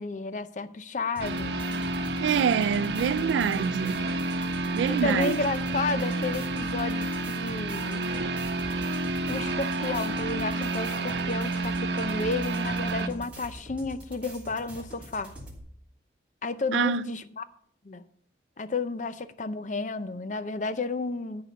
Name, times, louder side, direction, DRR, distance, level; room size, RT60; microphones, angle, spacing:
voice 1, 0.0-1.6 4.9-8.0 9.3-15.3 16.4-17.4 17.8-18.0 18.6-21.4, left 3 dB, 45° left, 0.6 m, -32 dB
sound 1, 1.1-15.6, equal, 10° right, 2.9 m, -44 dB
sound 2, 1.2-13.1, right 2 dB, 70° right, 0.9 m, -30 dB
voice 2, 2.2-4.1 4.7-5.4 8.2-8.3 16.7-17.1, right 7 dB, 85° right, 0.3 m, -26 dB
13.0 x 4.9 x 6.7 m
head